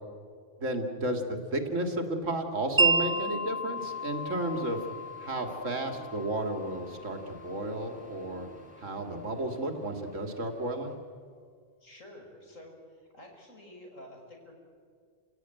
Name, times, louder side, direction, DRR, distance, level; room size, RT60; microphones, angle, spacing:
voice 1, 0.6-4.9 5.2-8.5 8.8-10.9, right 1 dB, 75° right, 5 dB, 2.6 m, -32 dB
Wind chime, 2.8-8.9, right 3 dB, 20° right, 1.8 m, -32 dB
sound 1, 3.7-11.0, right 1 dB, 5° right, 4.2 m, -54 dB
voice 2, 11.8-14.5, left 1 dB, 80° left, 2 dB, 5.6 m, -50 dB
29.0 x 17.5 x 9.1 m, 2.1 s
omnidirectional pair, 1.3 m